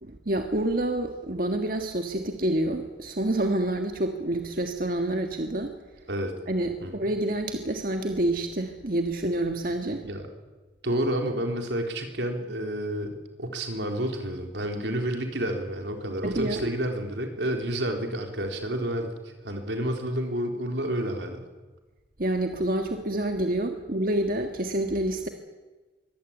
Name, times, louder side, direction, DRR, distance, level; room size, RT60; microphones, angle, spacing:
voice 1, 0.0-5.7 6.5-10.0 16.2-16.7 22.2-25.3, right 1 dB, 50° right, 5 dB, 1.6 m, -28 dB
voice 2, 10.8-19.1 19.4-21.4, right 1 dB, 80° right, 4 dB, 4.0 m, -30 dB
23.5 x 16.5 x 9.9 m, 1.2 s
head